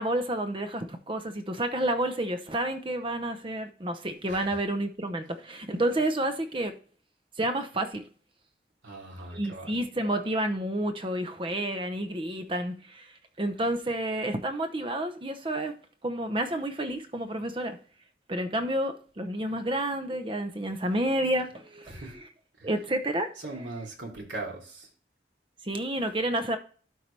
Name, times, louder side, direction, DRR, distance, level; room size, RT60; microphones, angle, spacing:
voice 1, 0.0-6.8 7.4-8.0 9.3-17.8 18.3-22.2 22.6-23.3 25.6-26.6, right 1 dB, 30° right, 0.7 m, -30 dB
voice 2, 4.3-4.6 8.8-9.8 21.9-22.2 22.6-22.7 23.4-24.9, right 2 dB, 80° right, 3.1 m, -40 dB
12.5 x 4.7 x 3.3 m
head